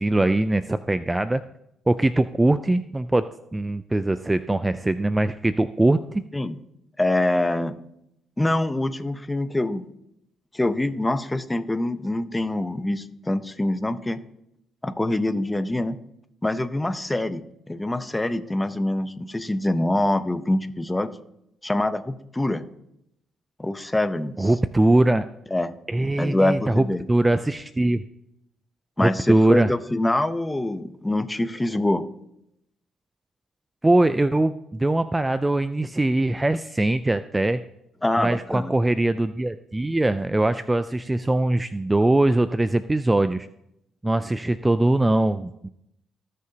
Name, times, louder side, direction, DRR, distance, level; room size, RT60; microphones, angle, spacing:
voice 1, 0.0-1.4 1.9-3.3 3.5-6.2 24.4-25.2 25.9-28.0 29.0-29.7 33.8-37.6 38.2-43.5 44.0-45.7, right 2 dB, 15° right, 12 dB, 0.3 m, -21 dB
voice 2, 7.0-7.8 8.4-9.8 10.5-14.2 14.8-16.0 16.4-21.1 21.6-22.6 23.6-24.5 25.5-25.7 26.2-27.0 29.0-32.1 38.0-38.7, left 1 dB, 10° left, 11 dB, 0.7 m, -25 dB
18.5 x 6.6 x 2.8 m, 0.79 s
cardioid pair, 90°, 0 cm